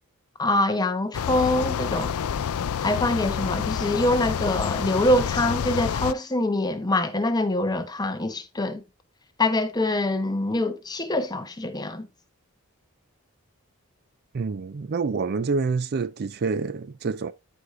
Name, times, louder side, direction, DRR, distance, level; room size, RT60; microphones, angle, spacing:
voice 1, 0.4-2.1 2.8-8.8 9.4-12.1, left 1 dB, 20° left, 1.0 m, -24 dB
sound 1, 1.1-6.1, left 7 dB, 70° left, 0.4 m, -28 dB
voice 2, 14.3-17.3, right 4 dB, 45° right, 0.4 m, -27 dB
13.0 x 4.9 x 2.5 m
head